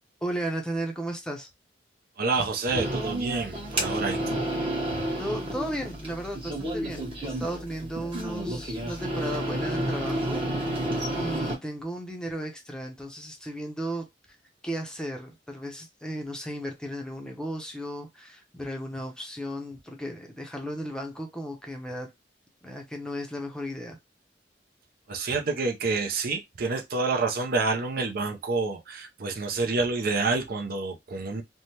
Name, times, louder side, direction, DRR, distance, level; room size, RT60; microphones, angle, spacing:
voice 1, 0.2-1.5 5.2-10.8 11.2-14.1 14.6-22.1 22.6-24.0, right 1 dB, 5° left, 0.6 m, -35 dB
voice 2, 2.2-4.5 4.9-5.0 25.1-31.4, right 3 dB, 55° right, 0.5 m, -28 dB
sound 1, 2.7-11.6, right 1 dB, 30° right, 1.0 m, -31 dB
3.3 x 2.1 x 2.8 m
head